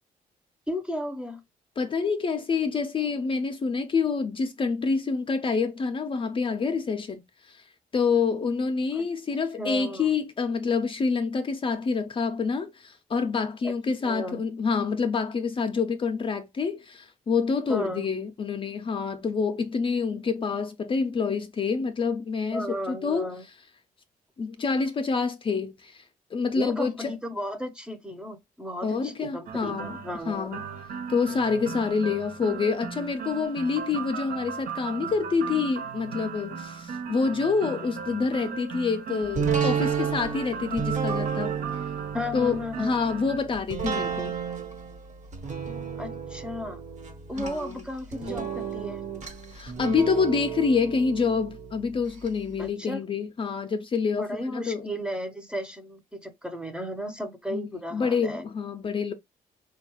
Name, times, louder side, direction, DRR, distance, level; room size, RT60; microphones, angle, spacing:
voice 1, 0.7-1.4 8.9-9.1 9.6-10.1 13.6-13.7 14.0-14.4 17.7-18.1 22.5-23.4 26.6-30.6 42.1-43.0 46.0-46.8 47.3-49.0 52.6-53.0 54.2-58.4, equal, 5° right, 0.7 m, -34 dB
voice 2, 1.8-7.6 7.9-23.3 24.4-26.0 26.3-27.1 28.8-30.6 31.1-41.6 42.3-44.4 47.4-47.9 49.5-54.9 57.5-59.1, left 5 dB, 35° left, 0.5 m, -27 dB
sound 1, 29.5-43.4, right 7 dB, 75° right, 0.7 m, -37 dB
sound 2, 39.3-52.3 52.7-52.8, right 7 dB, 55° right, 1.3 m, -32 dB
3.9 x 2.3 x 3.0 m
cardioid pair, 95°, 15 cm